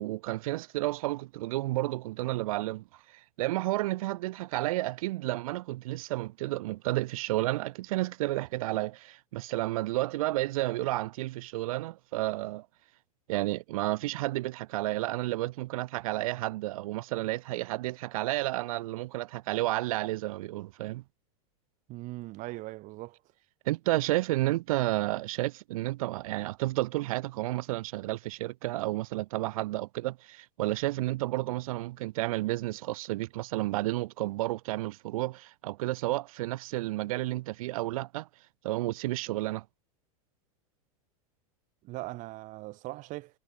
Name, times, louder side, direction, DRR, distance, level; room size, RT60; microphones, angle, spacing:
voice 1, 0.0-2.8 3.4-12.7 13.3-21.0 23.7-38.3 38.6-39.6, right 18 dB, 70° right, 0.8 m, -31 dB
voice 2, 21.9-23.2 41.8-43.4, right 20 dB, 45° right, 7.1 m, -40 dB
supercardioid pair, 140°, 19 cm